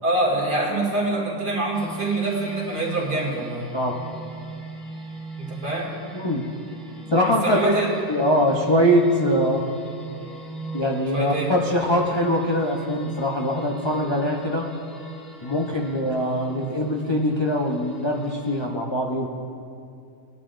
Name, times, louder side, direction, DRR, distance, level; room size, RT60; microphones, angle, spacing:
voice 1, 0.0-3.7 5.4-6.0 7.4-7.9 11.1-11.5, right 2 dB, 70° right, -3 dB, 2.8 m, -25 dB
sound 1, 1.7-18.7, right 3 dB, ahead, 1.3 m, -40 dB
voice 2, 6.1-6.5 7.1-9.7 10.7-14.7 15.4-19.3, equal, 35° left, -1 dB, 0.4 m, -22 dB
20.0 x 10.5 x 2.5 m, 2.4 s
omnidirectional pair, 1.8 m